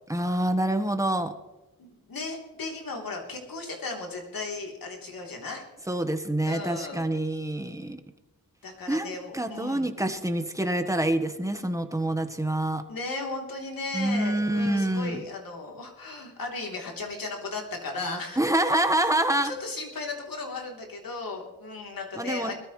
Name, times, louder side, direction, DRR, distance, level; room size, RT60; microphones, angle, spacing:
voice 1, 0.1-1.3 5.9-8.0 8.9-12.8 13.9-15.2 18.4-19.5 22.1-22.5, right 1 dB, 10° right, 7 dB, 1.4 m, -26 dB
voice 2, 1.8-5.6 6.4-7.1 8.6-9.9 12.9-18.4 18.7-18.8 19.4-22.5, left 3 dB, 70° left, 0 dB, 3.5 m, -36 dB
21.5 x 13.5 x 3.3 m, 1.0 s
wide cardioid pair, 85°, 36 cm